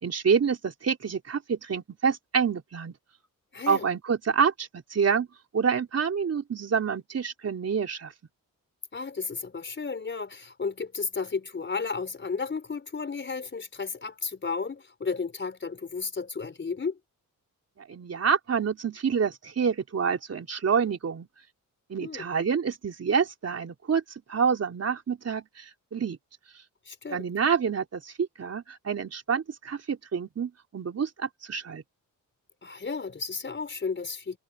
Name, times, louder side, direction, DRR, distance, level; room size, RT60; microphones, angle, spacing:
voice 1, 0.0-2.9 3.7-5.3 5.5-8.1 17.9-21.3 21.9-24.0 24.3-26.2 27.1-31.8, right 6 dB, 45° right, 3.9 m, -27 dB
voice 2, 3.5-3.9 8.9-17.0 22.0-22.3 26.9-27.3 32.6-34.4, left 4 dB, 35° left, 4.8 m, -33 dB
wide cardioid pair, 125°, 33 cm